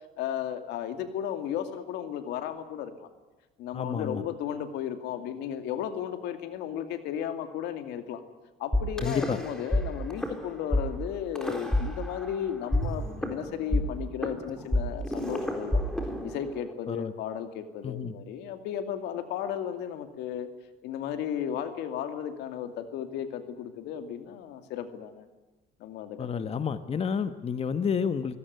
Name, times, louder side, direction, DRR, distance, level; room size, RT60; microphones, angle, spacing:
voice 1, 0.2-3.1 3.6-8.2 8.6-15.8 16.2-20.5 20.8-25.3 25.8-26.6, left 9 dB, 90° left, 8 dB, 2.5 m, -34 dB
voice 2, 3.7-4.2 9.0-9.4 16.9-17.1 17.8-18.1 26.2-28.4, left 6 dB, 35° left, 11 dB, 1.3 m, -30 dB
sound 1, 8.7-9.8 10.1-10.3 10.7-10.8 11.3-12.4 12.7-16.7, left 1 dB, 5° left, 4.0 m, -28 dB
24.0 x 17.0 x 9.4 m, 1.2 s
cardioid pair, 110°, 17 cm